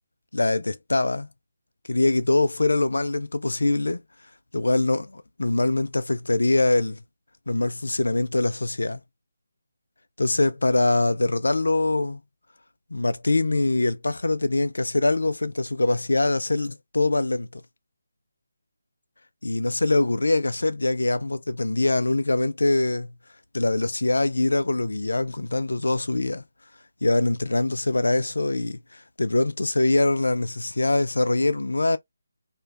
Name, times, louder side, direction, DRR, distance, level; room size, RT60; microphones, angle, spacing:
voice 1, 0.3-1.3 1.9-4.0 4.5-7.0 7.5-9.0 10.2-12.2 12.9-17.6 19.4-23.1 23.5-26.4 27.0-32.0, left 2 dB, 85° left, 0.3 m, -23 dB
2.5 x 2.2 x 2.3 m
figure-of-eight pair, 155°, 0 cm